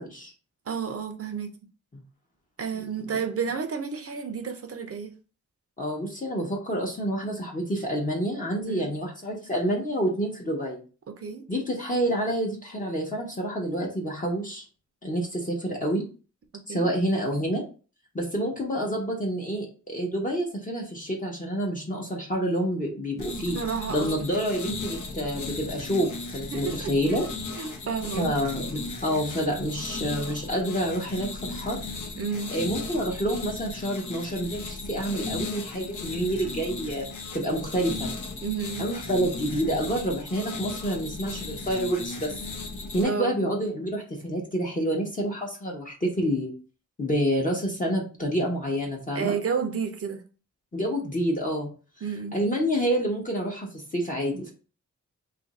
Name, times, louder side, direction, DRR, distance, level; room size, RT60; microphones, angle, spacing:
voice 1, 0.7-1.5 2.6-5.1 8.7-8.9 11.2-11.5 16.7-16.9 23.5-24.2 26.5-26.9 27.6-28.3 32.2-32.5 38.4-38.8 43.0-43.4 49.1-50.2 52.0-52.3, right 6 dB, 50° right, 6 dB, 0.6 m, -31 dB
voice 2, 5.8-10.8 11.5-14.6 15.0-16.0 16.7-17.6 18.1-23.6 23.9-27.3 28.1-31.8 32.5-38.1 38.8-42.3 42.9-46.5 47.0-49.3 50.7-51.7 52.3-54.5, equal, 25° left, -2 dB, 0.8 m, -28 dB
sound 1, 23.2-43.0, left 3 dB, 80° left, 0.8 m, -36 dB
2.8 x 2.5 x 4.0 m, 0.37 s
wide cardioid pair, 130°, 30 cm